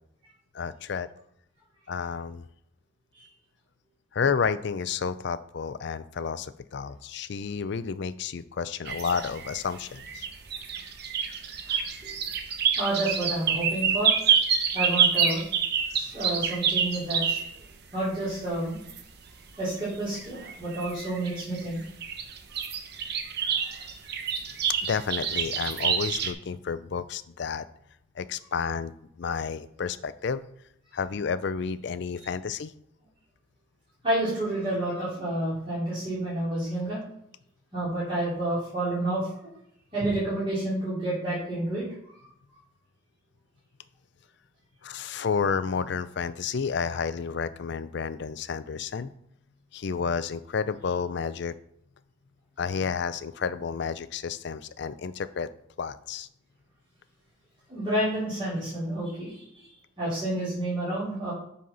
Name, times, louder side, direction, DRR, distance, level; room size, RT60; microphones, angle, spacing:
voice 1, 0.5-1.1 1.9-2.4 4.1-10.3 24.8-27.6 28.2-28.9 29.2-30.5 30.9-32.7 44.8-49.1 49.7-51.5 52.6-55.5 55.8-56.3, left 6 dB, 60° left, 14 dB, 0.4 m, -31 dB
sound 1, 8.8-17.7 18.1-19.0 19.7-19.8 20.2-21.6 21.9-26.3, right 7 dB, 55° right, 0.8 m, -27 dB
voice 2, 12.8-14.2 14.7-15.4 15.9-17.4 17.9-18.9 19.6-21.8 34.0-37.0 37.7-39.3 39.9-41.8 57.7-59.7 60.0-61.3, right 1 dB, 25° right, -12 dB, 3.1 m, -29 dB
7.6 x 4.1 x 5.4 m, 0.75 s
head